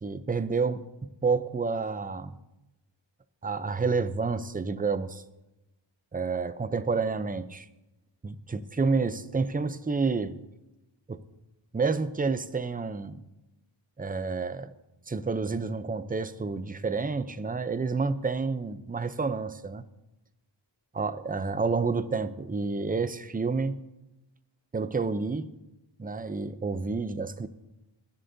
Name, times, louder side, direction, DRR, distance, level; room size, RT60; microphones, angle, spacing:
voice 1, 0.0-2.3 3.4-5.2 6.1-7.7 8.2-10.4 11.1-11.2 11.7-13.2 14.0-14.7 15.1-19.8 20.9-23.8 24.7-25.5 26.0-27.5, right 4 dB, 20° right, 13 dB, 0.5 m, -29 dB
23.0 x 11.0 x 2.7 m, 0.95 s
wide cardioid pair, 95°, 46 cm